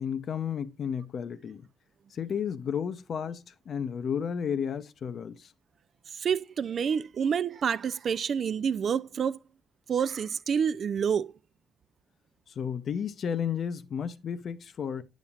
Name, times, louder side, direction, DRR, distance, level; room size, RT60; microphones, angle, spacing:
voice 1, 0.0-1.7 2.1-5.5 12.6-15.0, left 7 dB, 55° left, 0.6 m, -32 dB
voice 2, 6.1-9.4 9.9-11.3, right 7 dB, 55° right, 0.3 m, -28 dB
8.2 x 7.1 x 2.3 m
cardioid pair, 90°, 0 cm